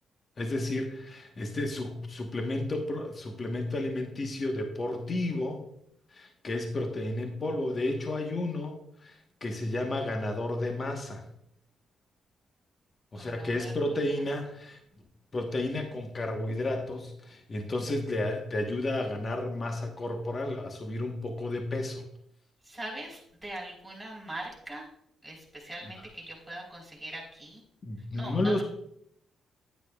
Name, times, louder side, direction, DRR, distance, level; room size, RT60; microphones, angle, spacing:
voice 1, 0.4-5.6 6.1-11.2 13.1-14.8 15.3-22.0 25.8-26.1 27.8-28.6, left 2 dB, 40° left, 3 dB, 1.2 m, -32 dB
voice 2, 13.2-13.7 22.6-24.9 25.2-27.6 28.1-28.6, right 1 dB, ahead, -2 dB, 3.7 m, -41 dB
9.6 x 9.2 x 2.3 m, 0.73 s
cardioid pair, 85°, 0 cm